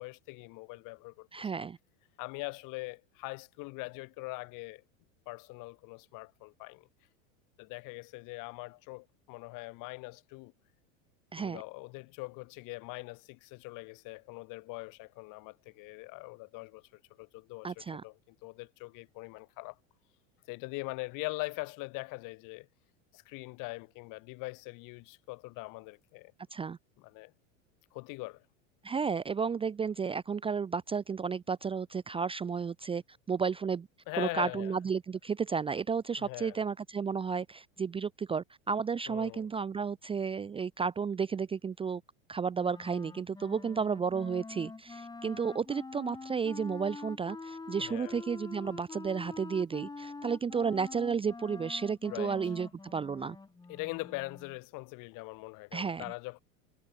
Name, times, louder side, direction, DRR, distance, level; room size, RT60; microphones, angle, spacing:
voice 1, 0.0-1.5 2.2-4.8 5.3-6.9 7.6-10.5 11.4-17.7 18.0-19.8 20.5-22.7 23.1-26.3 27.0-27.3 27.9-28.4 34.1-34.8 36.2-36.6 39.1-39.5 47.8-48.2 52.1-52.4 53.7-56.4, left 26 dB, 55° left, 5.6 m, -42 dB
voice 2, 1.3-1.8 11.3-11.6 17.6-18.0 26.5-26.8 28.8-33.0 33.3-33.9 34.2-42.0 42.3-53.4 55.7-56.0, right 6 dB, 15° right, 0.7 m, -32 dB
Wind instrument woodwind instrument, 42.5-54.6, left 3 dB, 10° left, 2.5 m, -46 dB
supercardioid pair, 115°, 39 cm